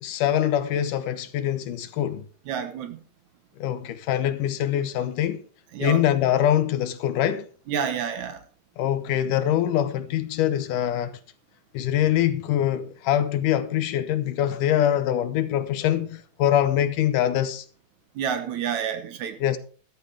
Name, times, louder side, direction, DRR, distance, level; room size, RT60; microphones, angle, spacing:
voice 1, 0.0-2.3 3.6-5.4 5.8-7.5 8.8-11.1 11.7-17.6 19.4-19.6, left 11 dB, 75° left, 2.3 m, -24 dB
voice 2, 2.5-3.0 5.7-6.0 7.7-8.4 18.2-19.4, right 8 dB, 65° right, 2.3 m, -29 dB
13.5 x 13.0 x 3.4 m
omnidirectional pair, 4.0 m